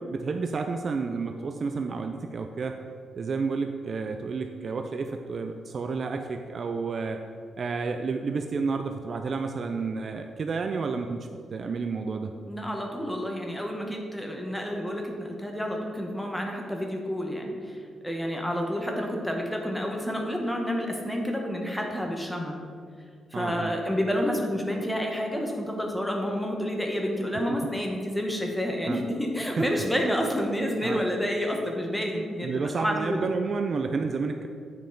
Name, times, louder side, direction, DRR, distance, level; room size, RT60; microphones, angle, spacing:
voice 1, 0.0-2.8 3.1-7.2 7.6-12.3 23.3-23.7 27.3-27.7 28.9-29.0 29.6-29.8 30.8-31.0 32.4-34.5, right 4 dB, 40° right, 6 dB, 0.3 m, -31 dB
voice 2, 12.4-17.8 18.0-22.6 23.3-32.5 32.8-33.3, equal, 5° left, 1 dB, 0.8 m, -29 dB
8.9 x 5.3 x 3.8 m, 2.2 s
wide cardioid pair, 165°, 0 cm